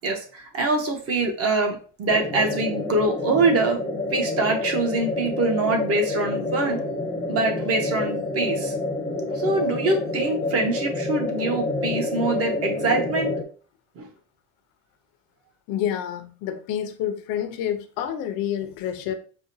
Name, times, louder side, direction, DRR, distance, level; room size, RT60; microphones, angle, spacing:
voice 1, 0.0-3.8 4.1-6.8 7.3-8.7 9.3-13.3 14.0-14.1, right 2 dB, 45° right, 1.0 m, -24 dB
sound 1, 2.1-13.4, left 2 dB, 15° left, 0.6 m, -28 dB
voice 2, 15.7-19.1, left 10 dB, 85° left, 0.6 m, -28 dB
4.9 x 2.2 x 2.6 m
cardioid pair, 155°, 34 cm